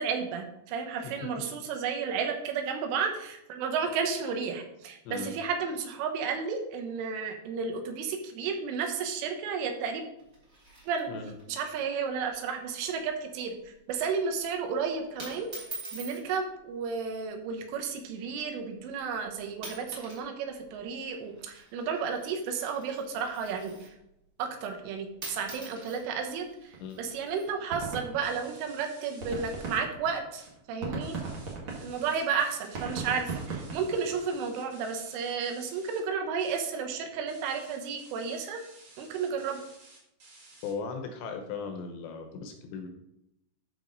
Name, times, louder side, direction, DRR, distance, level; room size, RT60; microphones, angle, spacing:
voice 1, 0.0-10.0 10.9-11.1 11.5-15.5 15.9-23.9 24.4-30.4 30.7-31.2 31.8-38.6 39.0-39.6, right 6 dB, 80° right, 4 dB, 3.7 m, -32 dB
sound 1, 10.2-11.4 11.7-11.8 12.1-12.4 12.7-13.1 13.4-13.7 14.4-14.7 15.2-16.2 17.2-17.5 18.2-18.3 19.0-19.2 19.5-20.3 20.5-24.0 24.9-25.0 25.2-27.5, right 2 dB, 25° right, 2.1 m, -45 dB
sound 2, 26.7-26.8 27.0-27.2 27.4-28.8 29.1-34.3, right 4 dB, 60° right, 1.2 m, -37 dB
sound 3, 28.2-29.8 30.1-30.5 30.8-36.0 36.4-36.7 37.3-40.7, right 2 dB, 40° right, 1.7 m, -54 dB
voice 2, 40.6-42.9, left 5 dB, 75° left, 5 dB, 2.9 m, -37 dB
12.5 x 5.1 x 3.9 m, 0.84 s
omnidirectional pair, 5.6 m